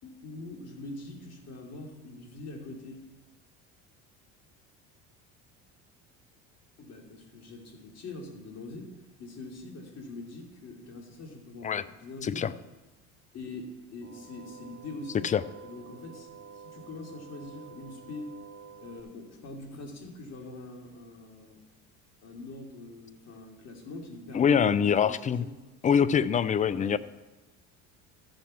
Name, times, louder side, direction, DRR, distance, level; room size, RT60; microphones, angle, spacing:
voice 1, 0.0-3.1 6.8-8.9 9.2-12.5 13.3-15.3 15.6-18.3 18.8-21.6 22.2-25.5 26.7-26.9, left 2 dB, 50° left, 1 dB, 3.0 m, -43 dB
voice 2, 12.2-12.5 15.2-15.4 24.3-25.4 25.8-27.0, left 7 dB, 20° left, 16 dB, 0.5 m, -24 dB
sound 1, 14.0-19.0, right 6 dB, 40° right, 2.8 m, -49 dB
14.0 x 6.6 x 5.8 m, 1.1 s
supercardioid pair, 85°, 34 cm